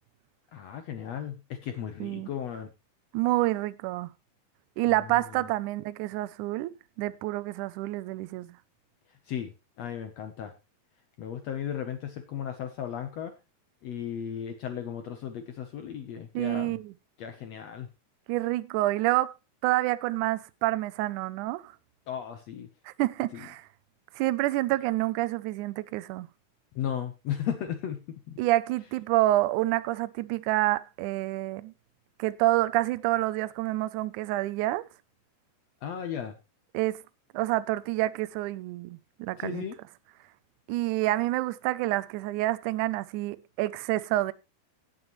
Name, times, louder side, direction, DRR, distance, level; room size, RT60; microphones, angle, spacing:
voice 1, 0.5-2.7 4.9-5.5 9.3-10.5 11.2-13.3 13.8-16.8 17.2-17.9 22.1-22.7 23.3-23.4 26.7-28.4 35.8-36.4 39.4-39.8, left 9 dB, 75° left, 1.6 m, -35 dB
voice 2, 2.0-2.3 3.1-4.1 4.8-6.7 7.0-8.6 16.4-16.9 18.3-19.3 19.6-21.7 22.9-23.6 24.2-26.3 28.4-31.7 32.2-34.8 36.7-37.0 37.3-39.6 40.7-44.3, right 17 dB, 85° right, 1.7 m, -28 dB
16.5 x 8.0 x 3.1 m
omnidirectional pair, 4.3 m